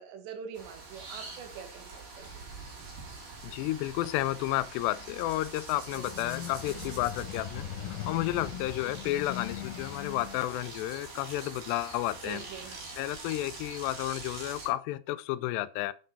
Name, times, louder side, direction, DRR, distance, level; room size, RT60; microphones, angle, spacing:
voice 1, 0.0-2.4 5.9-6.1 12.2-12.9, right 7 dB, 80° right, 3.8 m, -44 dB
sound 1, 0.5-14.7, right 3 dB, 55° right, 5.1 m, -44 dB
voice 2, 3.4-12.4 13.0-15.9, left 15 dB, 85° left, 2.7 m, -32 dB
sound 2, 5.5-10.8, left 11 dB, 60° left, 2.8 m, -41 dB
9.3 x 7.7 x 4.1 m
omnidirectional pair, 5.0 m